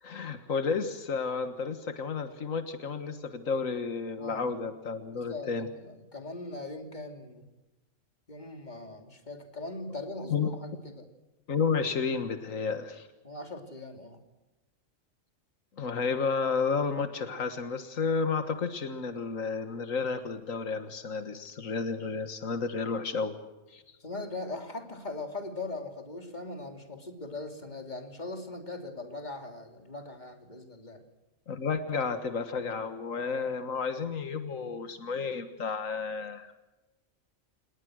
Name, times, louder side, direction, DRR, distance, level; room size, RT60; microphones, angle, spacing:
voice 1, 0.0-5.7 10.3-10.5 11.5-13.1 15.8-23.3 23.7-24.0 31.5-36.5, left 5 dB, 90° left, 9 dB, 1.9 m, -31 dB
voice 2, 4.2-4.5 5.1-7.5 8.3-11.1 13.2-14.2 24.0-31.0, left 2 dB, 35° left, 5 dB, 3.1 m, -40 dB
28.0 x 20.0 x 6.4 m, 1.1 s
omnidirectional pair, 1.3 m